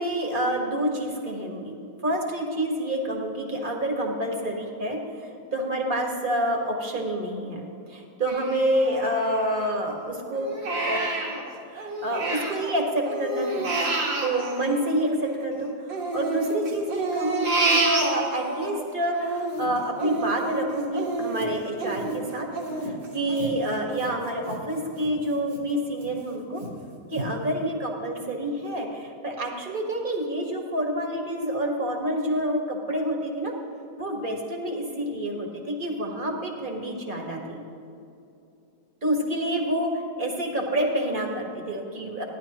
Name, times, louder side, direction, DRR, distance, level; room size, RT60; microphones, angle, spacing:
voice 1, 0.0-1.7 2.0-11.1 11.7-13.7 14.2-22.5 22.8-26.6 27.1-33.5 34.0-37.6 39.0-42.2, right 1 dB, 30° right, 1 dB, 1.4 m, -28 dB
Crying sobbing, 8.3-9.9 10.3-12.7 13.0-15.5 15.9-18.7 19.1-24.6 25.0-25.1 25.5-26.1 26.6-26.7 27.1-27.3, right 2 dB, 85° right, 2.3 m, -29 dB
15.5 x 11.0 x 3.0 m, 2.7 s
omnidirectional pair, 2.0 m